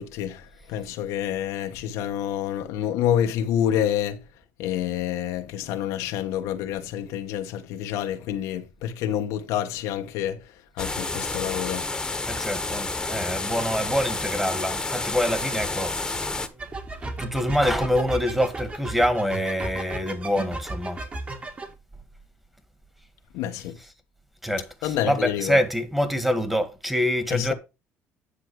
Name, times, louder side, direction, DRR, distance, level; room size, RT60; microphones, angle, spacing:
voice 1, 0.0-4.2 4.6-10.5 10.8-11.9 23.3-23.8 24.8-25.6 27.3-27.5, left 10 dB, 90° left, 1.1 m, -28 dB
sound 1, 10.8-16.5, left 3 dB, 15° left, 1.4 m, -30 dB
voice 2, 12.3-16.3 16.5-16.6 17.2-21.0 24.4-27.5, equal, 5° right, 1.8 m, -25 dB
sound 2, 16.6-21.7, right 2 dB, 25° right, 2.2 m, -34 dB
9.9 x 6.2 x 4.7 m
cardioid pair, 110°, 5 cm